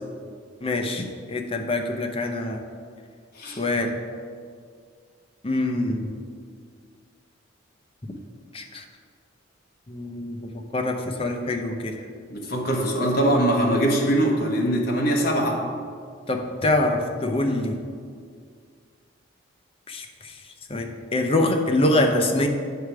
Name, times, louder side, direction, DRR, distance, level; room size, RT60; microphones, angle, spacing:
voice 1, 0.6-2.6 3.6-3.9 5.4-6.2 8.5-8.8 9.9-12.0 16.3-17.8 19.9-20.3 20.7-22.5, left 2 dB, 30° left, 3 dB, 0.6 m, -25 dB
voice 2, 12.3-15.6, right 1 dB, 45° left, -1 dB, 1.2 m, -22 dB
8.7 x 5.0 x 4.7 m, 2.1 s
head